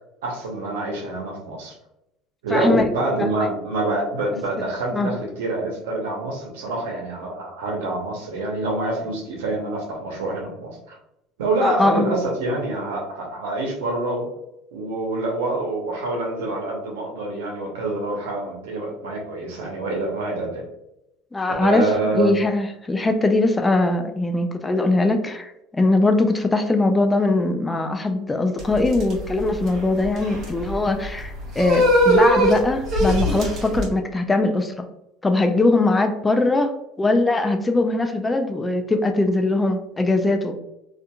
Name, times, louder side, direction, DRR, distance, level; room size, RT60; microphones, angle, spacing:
voice 1, 0.2-1.7 2.4-11.0 11.4-14.3 14.7-20.6 21.6-22.3, right 2 dB, 90° right, 0 dB, 0.7 m, -26 dB
voice 2, 2.5-2.9 3.2-3.3 4.9-5.1 11.6-12.1 21.3-21.9 22.1-25.5 25.8-34.8 35.2-40.6, left 2 dB, 15° left, 6 dB, 0.3 m, -21 dB
sound 1, 28.6-33.8, right 1 dB, 50° right, 0.9 m, -21 dB
2.7 x 2.4 x 2.2 m, 0.87 s
supercardioid pair, 95°, 0 cm